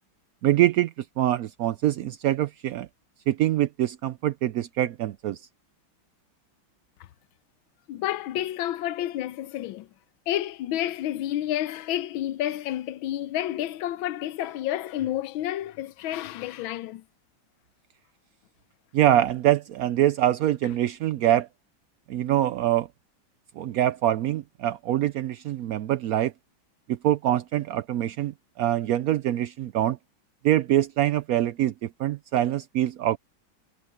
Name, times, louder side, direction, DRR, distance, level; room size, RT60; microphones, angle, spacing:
voice 1, 0.4-2.9 3.3-5.4 18.9-21.5 22.1-22.9 23.6-26.3 26.9-30.0 30.4-33.2, right 12 dB, 80° right, 0.8 m, -24 dB
voice 2, 7.9-9.9 10.3-17.0, left 13 dB, 90° left, 1.5 m, -30 dB
omnidirectional pair, 2.1 m